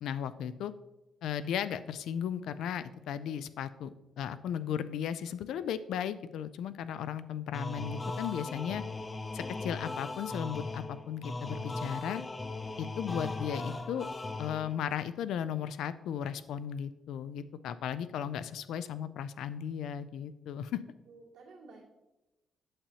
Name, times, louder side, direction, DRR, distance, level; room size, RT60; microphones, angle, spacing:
voice 1, 0.0-0.7 1.2-8.8 9.3-12.2 12.8-14.1 14.4-20.8, left 9 dB, 85° left, 14 dB, 0.4 m, -36 dB
sound 1, 7.5-14.9, left 2 dB, 20° left, 0.4 m, -38 dB
voice 2, 20.8-21.8, right 3 dB, 80° right, -5 dB, 2.3 m, -53 dB
8.6 x 6.8 x 2.8 m, 1.0 s
cardioid pair, 155°, 0 cm